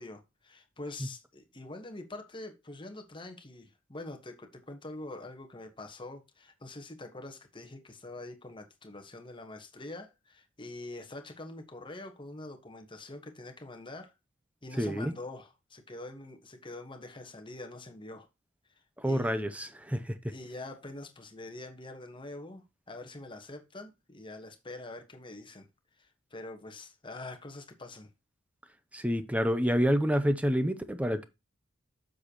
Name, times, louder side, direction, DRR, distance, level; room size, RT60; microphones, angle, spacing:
voice 1, 0.0-14.1 14.6-18.3 19.0-19.4 20.3-25.7 26.0-28.1, left 2 dB, 20° left, 1.2 m, -45 dB
voice 2, 14.8-15.1 19.0-20.3 28.9-31.3, equal, 5° right, 0.6 m, -28 dB
7.6 x 6.4 x 2.9 m
head